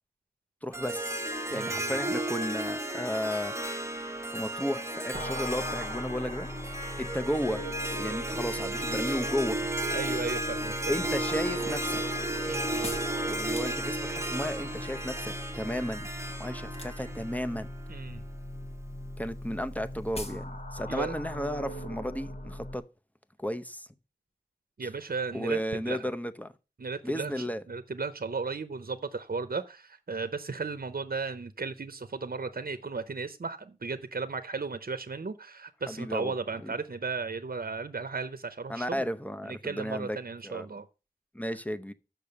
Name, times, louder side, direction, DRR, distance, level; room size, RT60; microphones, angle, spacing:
voice 1, 0.6-3.5 4.3-6.5 7.0-9.6 10.9-12.0 13.2-16.1 16.4-17.7 19.2-22.8 23.4-23.9 24.8-24.9 25.3-26.5 27.0-27.6 35.9-36.3 36.6-36.7 38.7-40.2 40.4-40.7 41.3-41.9, equal, 10° left, 0.7 m, -34 dB
Harp, 0.7-18.0, right 1 dB, 20° right, 1.1 m, -34 dB
voice 2, 1.5-1.9 9.9-11.1 12.5-13.0 17.9-18.2 20.9-21.2 24.8-26.1 26.8-39.0 39.5-40.9, right 4 dB, 75° right, 0.6 m, -35 dB
sound 1, 5.1-22.8, left 1 dB, 60° left, 1.1 m, -40 dB
sound 2, 12.8-14.3 16.7-17.3 17.6-18.2 18.4-18.6 18.9-19.0 19.2-19.3 19.6-19.7 20.1-20.5 20.8-20.9, left 1 dB, 40° left, 1.3 m, -42 dB
6.8 x 6.0 x 6.7 m
wide cardioid pair, 45°, 15 cm